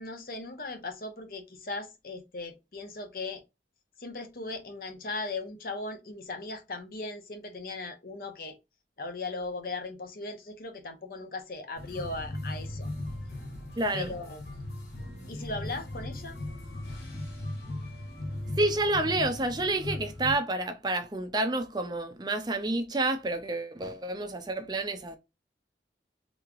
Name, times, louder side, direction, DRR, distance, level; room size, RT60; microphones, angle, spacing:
voice 1, 0.0-3.4 4.0-8.6 9.0-12.9 13.9-14.4 15.3-16.4, left 3 dB, 55° left, 0.8 m, -38 dB
sound 1, 11.8-20.4, left 1 dB, 75° left, 1.5 m, -38 dB
voice 2, 13.8-14.1 18.6-25.2, right 2 dB, 25° right, 0.5 m, -29 dB
3.4 x 3.1 x 2.4 m
head